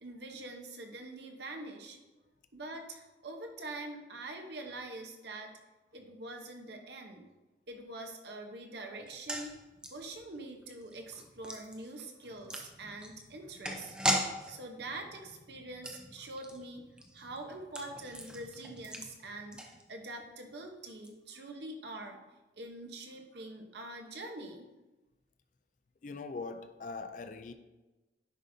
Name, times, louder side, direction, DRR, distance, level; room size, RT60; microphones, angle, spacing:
voice 1, 0.0-2.0 2.5-5.6 5.9-7.2 7.7-9.5 9.9-13.9 14.5-16.8 17.1-22.2 22.6-24.7, right 2 dB, 70° right, 1.0 m, -44 dB
sound 1, 9.0-20.3 20.5-20.6 20.9-21.1, right 1 dB, 5° right, 0.6 m, -40 dB
voice 2, 26.0-27.5, left 4 dB, 45° left, 0.4 m, -41 dB
10.0 x 5.2 x 2.7 m
head